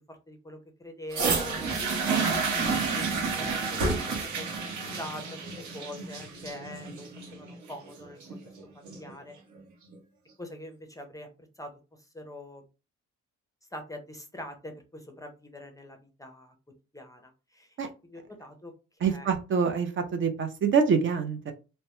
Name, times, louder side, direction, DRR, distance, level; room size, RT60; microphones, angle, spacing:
voice 1, 0.1-2.2 3.0-8.4 8.7-9.4 10.4-11.7 12.0-12.6 13.7-16.5 16.9-17.8 18.0-18.7 19.1-19.3, left 1 dB, 10° left, 5 dB, 0.5 m, -44 dB
sound 1, 1.1-9.1 9.9-10.0, right 4 dB, 75° right, 0.8 m, -30 dB
voice 2, 19.0-21.5, right 6 dB, 40° right, 5 dB, 0.4 m, -25 dB
2.1 x 2.0 x 2.9 m, 0.31 s
cardioid pair, 90°, 30 cm